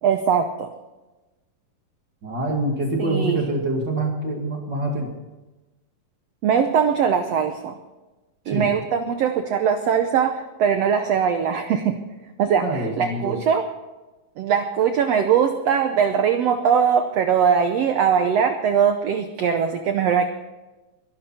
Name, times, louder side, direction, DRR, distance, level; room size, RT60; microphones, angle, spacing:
voice 1, 0.0-0.7 3.0-3.4 6.4-7.8 8.5-11.9 12.4-13.6 14.4-20.3, right 7 dB, 80° right, 7 dB, 1.4 m, -21 dB
voice 2, 2.2-5.1 8.5-8.7 12.6-13.4, right 1 dB, 35° right, 1 dB, 2.3 m, -25 dB
22.5 x 12.5 x 4.3 m, 1.1 s
omnidirectional pair, 4.1 m